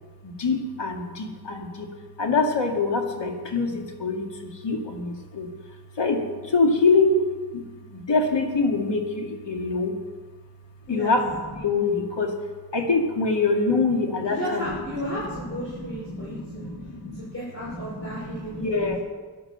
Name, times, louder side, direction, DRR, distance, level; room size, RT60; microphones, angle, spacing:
voice 1, 0.2-1.9 2.2-5.5 6.0-7.2 7.5-10.0 10.9-12.4 12.7-14.7 15.5-17.3 17.6-19.0, left 3 dB, 90° left, 1 dB, 2.4 m, -25 dB
voice 2, 14.2-16.7 17.1-18.9, equal, 30° left, -7 dB, 5.5 m, -34 dB
16.0 x 11.5 x 6.8 m, 1.4 s
wide cardioid pair, 95°, 42 cm